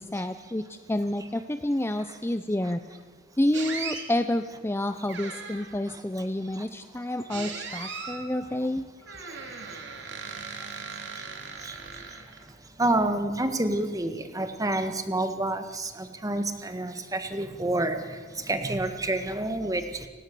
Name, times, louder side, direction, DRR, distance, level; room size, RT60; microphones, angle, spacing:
voice 1, 0.0-2.8 3.4-9.2, left 1 dB, 10° left, 9 dB, 0.6 m, -29 dB
sound 1, 3.5-4.1 5.1-5.8 7.3-8.3 9.1-12.5, right 5 dB, 60° right, 3.0 m, -38 dB
voice 2, 5.9-6.7 6.9-7.0 9.2-20.1, right 1 dB, 20° right, 7 dB, 1.7 m, -30 dB
29.5 x 16.5 x 6.9 m, 1.5 s
head